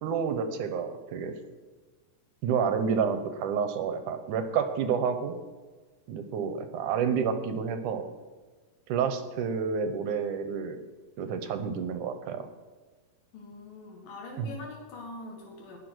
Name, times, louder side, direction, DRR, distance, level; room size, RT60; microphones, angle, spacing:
voice 1, 0.0-1.3 2.4-5.4 6.1-8.0 8.9-10.8 11.2-12.4 14.4-14.5, right 6 dB, 70° right, 8 dB, 2.3 m, -29 dB
voice 2, 13.3-15.8, left 2 dB, 75° left, 0 dB, 3.6 m, -43 dB
20.0 x 7.0 x 6.3 m, 1.3 s
omnidirectional pair, 4.1 m